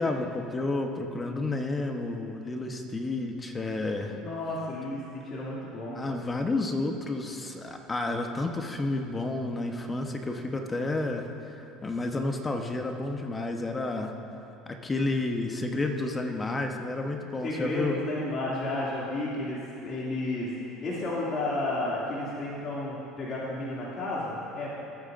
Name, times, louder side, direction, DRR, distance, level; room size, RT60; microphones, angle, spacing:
voice 1, 0.0-4.2 5.9-14.1 14.8-18.0, left 2 dB, 20° left, 4 dB, 1.0 m, -31 dB
voice 2, 4.1-6.0 17.4-24.7, left 2 dB, 45° left, -7 dB, 2.5 m, -32 dB
19.5 x 8.8 x 2.6 m, 2.9 s
supercardioid pair, 100°, 0 cm